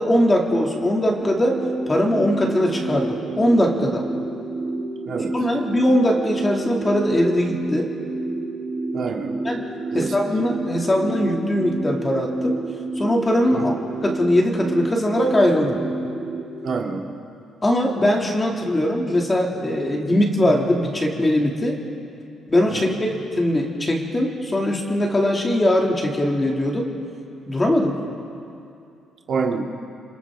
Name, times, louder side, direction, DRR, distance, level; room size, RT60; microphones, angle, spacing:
voice 1, 0.0-1.6 1.9-4.0 5.3-7.9 9.4-9.7 9.9-12.6 13.0-13.7 14.0-15.7 17.6-21.8 22.5-26.9 27.5-27.9, left 1 dB, 20° left, 0 dB, 2.4 m, -21 dB
sound 1, 1.2-16.4, right 2 dB, 40° right, 6.6 m, -29 dB
voice 2, 8.9-9.4 9.9-10.2 13.5-13.7 16.6-17.1 22.7-23.1 29.3-29.6, right 5 dB, 55° right, 1 dB, 1.9 m, -27 dB
27.5 x 26.0 x 3.7 m, 2.6 s
cardioid pair, 135°, 0 cm